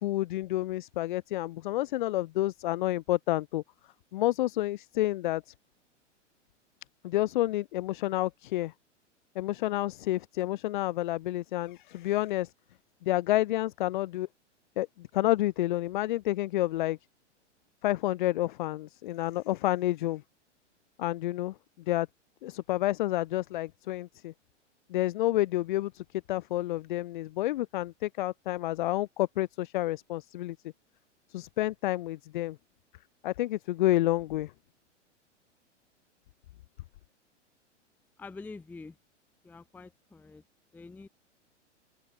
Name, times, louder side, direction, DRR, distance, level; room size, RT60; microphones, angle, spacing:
voice 1, 0.0-3.6 4.1-5.4 7.0-8.7 9.4-12.5 13.0-14.3 14.8-17.0 17.8-20.2 21.0-21.5 21.9-22.1 22.4-24.3 24.9-30.6 31.3-32.6 33.2-34.5, left 16 dB, 45° left, 0.5 m, -29 dB
voice 2, 38.2-39.0 39.4-40.4 40.7-41.1, left 3 dB, 5° left, 0.7 m, -46 dB
open air
figure-of-eight pair, 105°, 36 cm